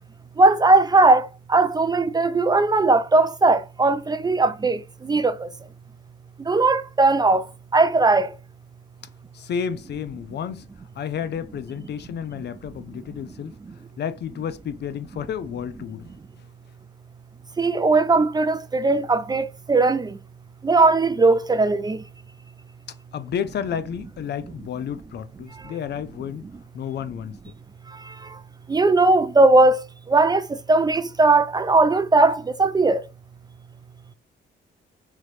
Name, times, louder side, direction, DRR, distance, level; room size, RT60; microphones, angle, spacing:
voice 1, 0.4-5.5 6.5-7.5 7.7-8.3 17.6-20.2 20.6-22.0 28.7-29.8 30.1-33.0, right 3 dB, 20° right, 0.3 m, -18 dB
voice 2, 9.3-10.7 11.0-13.5 14.0-16.1 23.1-26.4 26.7-27.4, left 8 dB, 60° left, 0.5 m, -31 dB
3.7 x 3.1 x 3.3 m
cardioid pair, 90°, 20 cm